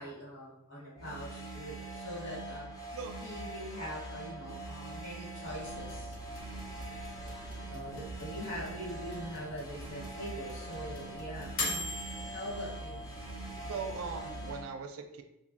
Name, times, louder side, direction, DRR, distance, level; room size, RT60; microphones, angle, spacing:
voice 1, 0.0-2.7 3.2-6.2 7.7-11.6 12.3-13.0, equal, 60° left, -6 dB, 1.3 m, -42 dB
sound 1, 1.0-14.7, right 1 dB, 15° left, 0.5 m, -43 dB
sound 2, 5.4-14.5, left 1 dB, 80° left, 0.8 m, -43 dB
voice 2, 13.7-15.2, right 5 dB, 75° right, 6 dB, 0.4 m, -39 dB
3.2 x 2.3 x 2.5 m, 0.87 s
head